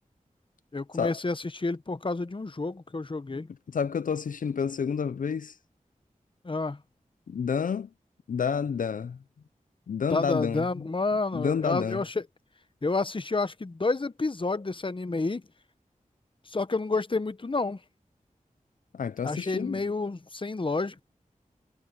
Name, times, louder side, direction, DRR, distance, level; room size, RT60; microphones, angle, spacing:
voice 1, 0.7-3.5 6.4-6.8 10.1-12.3 12.8-15.4 16.5-17.8 19.2-21.0, left 3 dB, 35° left, 0.9 m, -29 dB
voice 2, 3.7-5.6 7.3-7.9 8.3-9.2 9.9-10.8 11.3-12.0 18.9-19.8, left 6 dB, 70° left, 0.4 m, -29 dB
wide cardioid pair, 70°, 14 cm